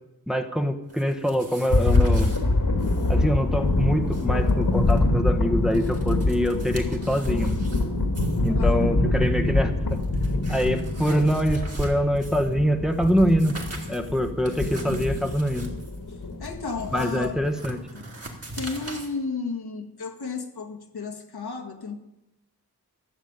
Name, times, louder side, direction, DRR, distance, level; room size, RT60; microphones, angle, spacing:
voice 1, 0.3-2.3 3.1-7.6 8.4-10.0 10.5-13.6 13.9-15.7 16.9-17.8, equal, ahead, 1.1 m, -24 dB
sound 1, 0.9-2.4 2.8-3.2 3.4-3.5 3.9-5.0 5.5-7.8 8.1-8.5 9.3-9.4 9.8-12.5 12.9-19.1, right 2 dB, 40° right, 2.8 m, -40 dB
sound 2, 1.7-17.5, left 2 dB, 60° left, 2.1 m, -25 dB
voice 2, 8.5-8.8 16.4-17.4 17.9-18.0 18.6-22.0, left 4 dB, 80° left, 1.9 m, -33 dB
13.0 x 7.2 x 8.8 m
wide cardioid pair, 75°, 38 cm